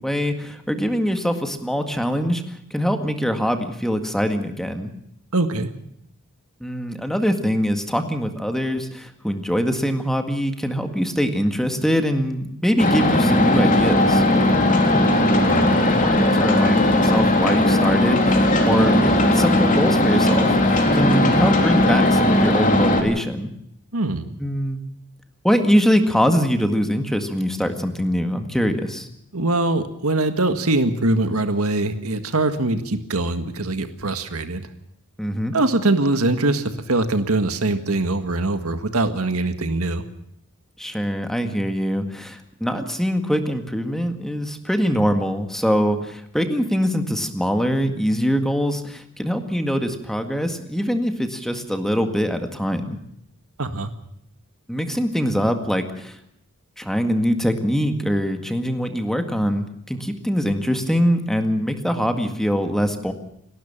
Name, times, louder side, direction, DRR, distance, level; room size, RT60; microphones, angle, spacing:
voice 1, 0.0-4.9 6.6-14.2 15.8-23.5 24.4-24.8 25.4-29.1 35.2-35.5 40.8-53.0 54.7-56.2 56.8-63.1, equal, ahead, 6 dB, 1.9 m, -23 dB
voice 2, 5.3-5.7 15.4-15.7 23.9-24.3 29.3-34.7 35.5-40.0 53.6-53.9, right 2 dB, 85° right, 8 dB, 1.8 m, -22 dB
sound 1, 12.8-23.0, left 1 dB, 40° left, 3.3 m, -17 dB
29.5 x 12.5 x 7.3 m, 0.74 s
head